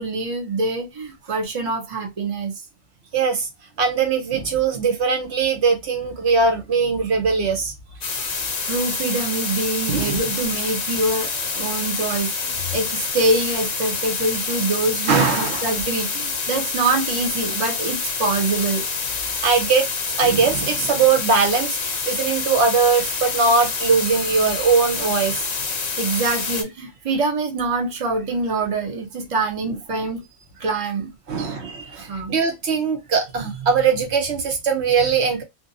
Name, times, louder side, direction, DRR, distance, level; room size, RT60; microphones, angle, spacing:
voice 1, 0.0-2.5 8.6-18.8 26.0-30.2 30.6-31.1 31.4-31.5 32.1-32.4, right 3 dB, 35° right, 0.7 m, -25 dB
voice 2, 3.1-3.5 3.8-7.7 9.9-10.2 15.1-15.7 19.4-19.9 20.2-25.5 31.3-35.4, right 5 dB, 70° right, 0.9 m, -20 dB
sound 1, 8.0-26.6, left 4 dB, 45° left, 0.6 m, -27 dB
2.6 x 2.2 x 2.5 m
omnidirectional pair, 1.2 m